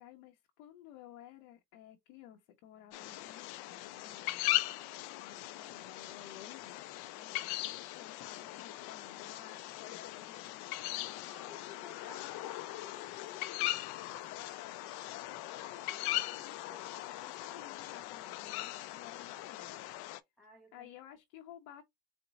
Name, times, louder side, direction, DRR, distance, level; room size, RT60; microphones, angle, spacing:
voice 1, 0.0-4.6 5.2-11.3 12.1-19.8 20.7-21.8, left 11 dB, 85° left, 1.0 m, -55 dB
sound 1, 2.9-20.2, left 17 dB, 65° left, 0.6 m, -39 dB
voice 2, 11.3-13.0 16.7-17.0 20.4-20.9, equal, ahead, 0.9 m, -59 dB
4.5 x 2.2 x 3.9 m
cardioid pair, 130°, 42 cm